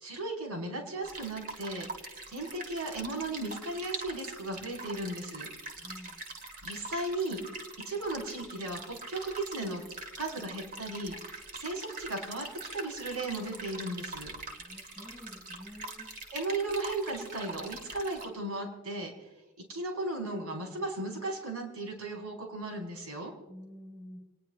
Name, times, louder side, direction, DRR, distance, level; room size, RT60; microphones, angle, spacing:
voice 1, 0.0-1.9 2.3-5.5 6.6-7.4 7.8-9.8 10.2-11.1 11.5-12.4 12.7-14.3 16.3-19.1 19.7-23.3, right 2 dB, 90° right, 1 dB, 4.9 m, -36 dB
sound 1, 1.0-18.3, right 2 dB, 40° right, 2.1 m, -43 dB
voice 2, 5.7-6.2 14.6-16.1 23.5-24.2, equal, ahead, -3 dB, 5.7 m, -48 dB
28.0 x 20.0 x 2.5 m, 1.1 s
head